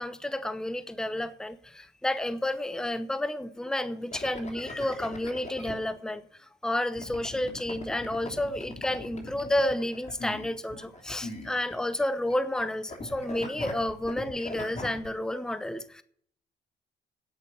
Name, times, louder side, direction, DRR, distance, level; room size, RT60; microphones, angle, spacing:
voice 1, 0.0-16.0, left 1 dB, 5° left, 0.8 m, -31 dB
sound 1, 4.1-5.7 7.0-12.0 12.3-12.6 12.9-15.1, left 2 dB, 35° left, 3.0 m, -40 dB
10.0 x 8.3 x 8.6 m
cardioid pair, 90°, 20 cm